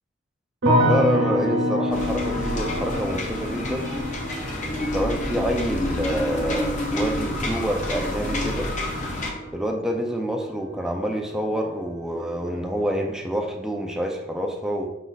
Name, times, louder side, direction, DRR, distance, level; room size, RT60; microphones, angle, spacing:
sound 1, 0.6-11.7 12.0-12.7, equal, 75° right, 0.9 m, -28 dB
voice 1, 0.8-3.9 4.9-8.7 9.5-14.9, right 1 dB, 5° right, 1 dB, 0.4 m, -27 dB
sound 2, 1.9-9.3, left 1 dB, 35° left, 0.7 m, -28 dB
5.1 x 2.4 x 3.9 m, 0.95 s
head